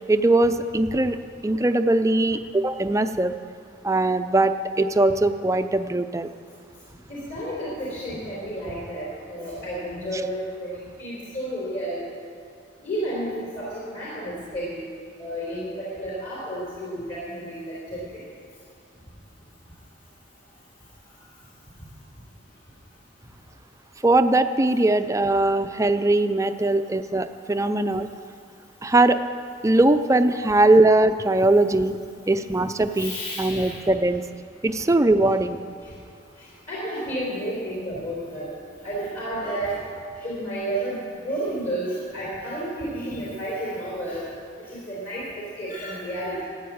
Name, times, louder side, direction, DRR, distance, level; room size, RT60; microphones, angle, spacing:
voice 1, 0.1-1.2 1.4-3.3 3.8-6.3 24.0-28.1 28.8-29.2 29.6-32.0 32.3-34.2 34.6-35.6, right 2 dB, 15° right, 9 dB, 0.5 m, -20 dB
voice 2, 7.1-12.0 12.8-14.9 15.2-18.2 32.9-33.8 34.7-34.8 35.8-35.9 36.4-38.5 38.8-39.9 40.2-44.3 44.6-45.3 45.6-46.4, right 1 dB, 45° left, -7 dB, 3.8 m, -31 dB
14.0 x 9.4 x 8.6 m, 2.3 s
head